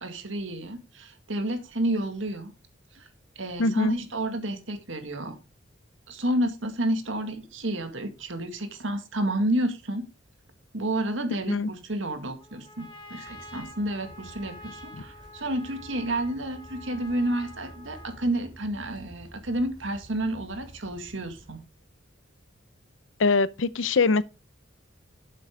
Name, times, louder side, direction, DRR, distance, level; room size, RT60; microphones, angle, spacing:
voice 1, 0.0-2.5 2.9-3.1 3.4-5.4 6.1-10.0 10.7-21.6, right 1 dB, 75° right, 2.0 m, -30 dB
voice 2, 3.6-4.0 11.5-11.7 23.2-24.2, left 3 dB, 75° left, 0.6 m, -22 dB
Trumpet, 12.4-18.4, left 1 dB, 25° left, 2.0 m, -47 dB
sound 1, 13.2-21.6, right 1 dB, 25° right, 3.1 m, -50 dB
10.0 x 7.8 x 3.7 m
head